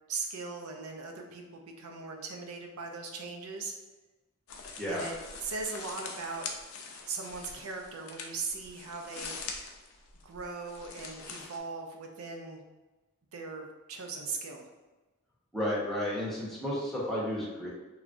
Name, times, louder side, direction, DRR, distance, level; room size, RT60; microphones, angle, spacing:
voice 1, 0.1-3.7 4.9-5.1 5.4-6.5 7.1-9.6 10.2-12.6 13.3-14.7, right 4 dB, 90° right, 3 dB, 0.5 m, -39 dB
sound 1, 4.5-11.6, left 4 dB, 80° left, 0.4 m, -44 dB
voice 2, 15.5-17.7, left 1 dB, ahead, -7 dB, 0.7 m, -32 dB
3.0 x 2.3 x 2.5 m, 1.2 s
head